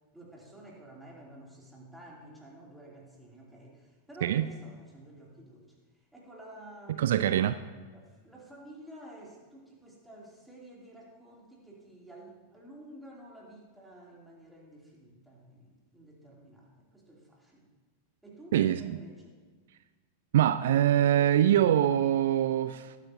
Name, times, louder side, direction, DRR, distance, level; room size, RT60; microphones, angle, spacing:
voice 1, 0.1-7.1 7.9-17.7 18.2-19.4, right 1 dB, 5° right, -3 dB, 3.0 m, -51 dB
voice 2, 7.0-7.6 18.5-19.0 20.3-23.0, right 11 dB, 60° right, 13 dB, 0.4 m, -24 dB
19.5 x 9.1 x 2.8 m, 1.4 s
figure-of-eight pair, 90°, 0 cm